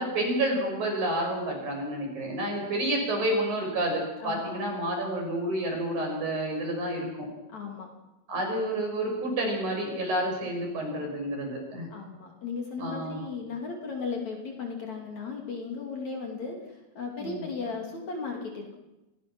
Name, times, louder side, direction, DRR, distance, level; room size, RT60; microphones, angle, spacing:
voice 1, 0.0-7.3 8.3-11.9 12.8-13.2 17.2-17.4, right 1 dB, 50° right, 1 dB, 8.0 m, -29 dB
voice 2, 4.2-4.7 7.5-7.9 11.9-18.7, left 4 dB, 50° left, 1 dB, 3.7 m, -36 dB
28.5 x 22.0 x 6.1 m, 0.99 s
omnidirectional pair, 4.5 m